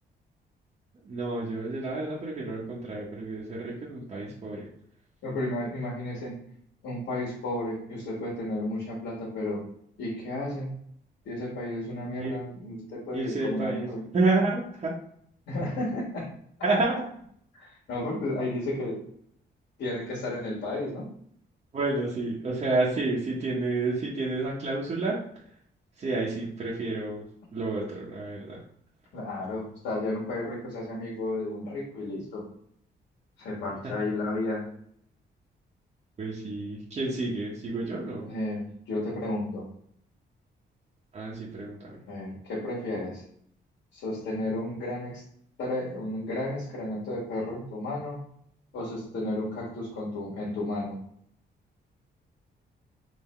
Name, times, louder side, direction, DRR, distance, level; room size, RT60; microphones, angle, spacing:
voice 1, 1.0-4.7 12.2-12.4 13.1-14.9 16.6-17.0 21.7-25.2 26.0-27.2 27.5-28.6 33.8-34.1 36.2-38.3 41.1-42.0, right 2 dB, 35° right, -6 dB, 0.9 m, -30 dB
voice 2, 5.2-6.3 6.8-9.6 10.0-10.7 11.2-14.0 15.5-16.3 17.5-19.0 19.8-21.0 29.1-32.4 33.4-34.6 38.2-39.7 42.1-43.2 43.9-45.2 45.6-48.2 48.7-51.0, left 1 dB, 85° left, -5 dB, 1.6 m, -33 dB
3.8 x 2.8 x 4.2 m, 0.67 s
wide cardioid pair, 160°, 19 cm